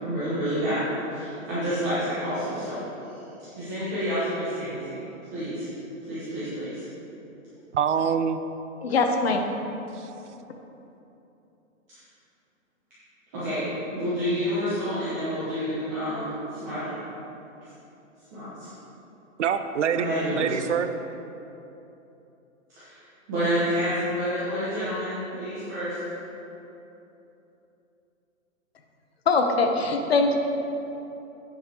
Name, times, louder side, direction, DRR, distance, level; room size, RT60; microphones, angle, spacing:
voice 1, 0.0-3.2 3.6-5.0 5.3-5.7 6.1-6.8 13.3-13.6 13.9-16.9 18.3-18.7 19.9-20.6 22.7-26.0, equal, 15° right, -13 dB, 0.9 m, -29 dB
voice 2, 7.7-8.4 9.9-10.1 19.4-20.9, right 7 dB, 60° right, 9 dB, 0.5 m, -25 dB
voice 3, 8.8-9.4 29.3-30.4, left 3 dB, 50° left, 4 dB, 0.8 m, -22 dB
9.2 x 5.2 x 4.3 m, 3.0 s
hypercardioid pair, 175°, 40 cm